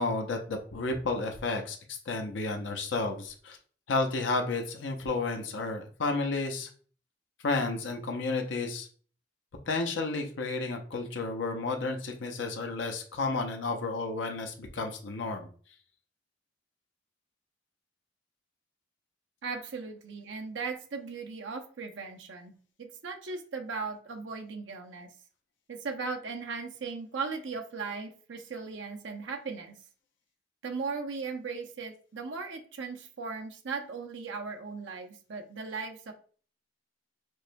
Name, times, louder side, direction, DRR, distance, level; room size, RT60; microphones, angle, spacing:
voice 1, 0.0-3.6 3.9-6.7 7.4-8.9 9.7-15.5, left 3 dB, 70° left, 3 dB, 0.6 m, -32 dB
voice 2, 19.4-25.1 25.7-29.8 30.6-36.1, right 4 dB, 75° right, 4 dB, 0.6 m, -37 dB
4.6 x 2.2 x 2.5 m, 0.43 s
head